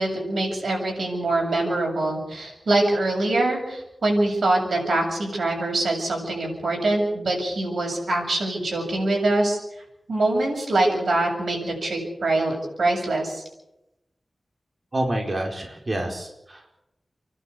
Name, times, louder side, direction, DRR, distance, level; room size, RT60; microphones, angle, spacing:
voice 1, 0.0-9.6 10.1-13.4, right 2 dB, 90° right, 1 dB, 7.6 m, -24 dB
voice 2, 14.9-16.8, right 1 dB, 45° right, 1 dB, 4.5 m, -28 dB
29.5 x 11.5 x 8.5 m, 0.89 s
wide cardioid pair, 55°, 0 cm